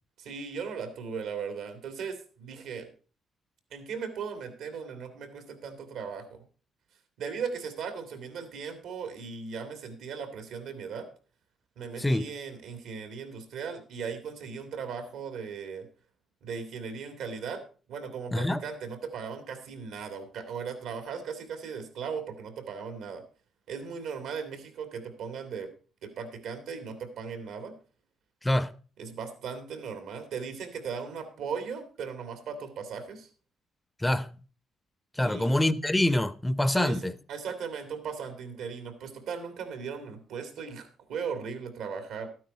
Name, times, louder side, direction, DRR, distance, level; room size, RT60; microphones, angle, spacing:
voice 1, 0.2-2.9 3.7-6.4 7.2-11.1 11.8-15.9 16.4-17.6 17.9-23.2 23.7-25.7 26.0-27.7 29.0-33.3 35.2-35.5 36.7-42.3, right 6 dB, 85° right, 2.4 m, -37 dB
voice 2, 18.3-18.6 28.4-28.7 34.0-34.3 35.2-37.1, left 1 dB, 10° left, 0.6 m, -25 dB
12.5 x 9.4 x 4.3 m
cardioid pair, 90°, 0 cm